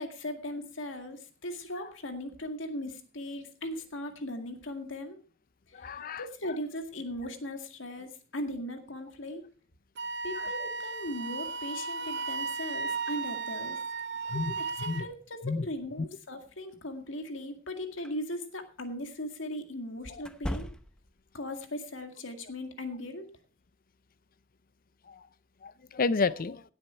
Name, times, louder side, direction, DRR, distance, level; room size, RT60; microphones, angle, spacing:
voice 1, 0.0-5.2 5.7-5.9 6.2-9.4 10.2-13.8 14.6-20.7 21.3-23.3, left 1 dB, 75° left, 6 dB, 2.1 m, -38 dB
voice 2, 5.7-6.2 10.4-10.5 14.3-15.1 15.4-15.7 25.1-25.2 25.6-26.6, left 4 dB, 45° left, 17 dB, 0.6 m, -31 dB
Wind instrument woodwind instrument, 10.0-15.1, right 4 dB, 60° right, 0.7 m, -35 dB
sound 1, 18.0-18.2 20.2-21.2, equal, 5° left, 0.8 m, -37 dB
17.0 x 7.9 x 4.4 m, 0.37 s
head